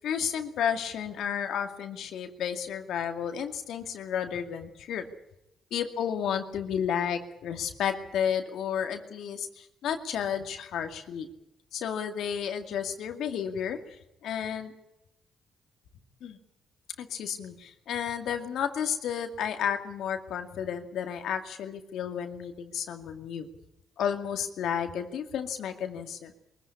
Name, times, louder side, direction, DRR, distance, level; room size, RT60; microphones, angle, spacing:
voice 1, 0.0-5.0 5.7-11.3 11.7-13.8 14.2-14.7 16.2-16.4 17.0-23.5 24.0-26.3, left 8 dB, 75° left, 6 dB, 2.3 m, -32 dB
23.0 x 15.0 x 9.8 m, 0.88 s
cardioid pair, 75°, 0 cm